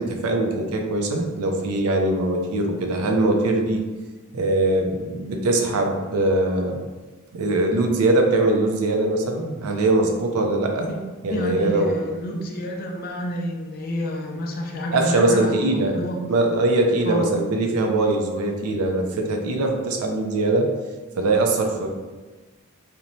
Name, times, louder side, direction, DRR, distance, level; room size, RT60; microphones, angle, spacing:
voice 1, 0.0-3.8 4.3-6.8 7.3-10.9 11.2-12.0 14.9-16.0 16.3-20.7 21.2-21.9, right 2 dB, 80° right, 3 dB, 0.4 m, -22 dB
voice 2, 11.3-16.2 17.1-17.3, left 1 dB, 45° left, 1 dB, 0.3 m, -29 dB
2.9 x 2.1 x 2.6 m, 1.3 s
head